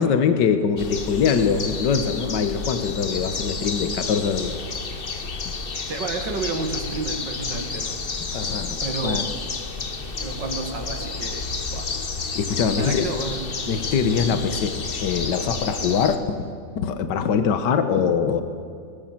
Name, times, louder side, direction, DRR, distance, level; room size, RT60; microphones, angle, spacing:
voice 1, 0.0-4.5 5.5-5.6 8.3-9.3 12.4-13.1 13.7-16.4 16.8-18.4, left 6 dB, 65° left, 9 dB, 1.7 m, -23 dB
sound 1, 0.8-16.2, left 4 dB, 35° left, 1.1 m, -30 dB
voice 2, 5.9-8.0 8.8-9.3 10.2-11.9 12.8-13.6, right 4 dB, 65° right, 5 dB, 2.6 m, -31 dB
20.0 x 20.0 x 7.5 m, 2.3 s
omnidirectional pair, 2.1 m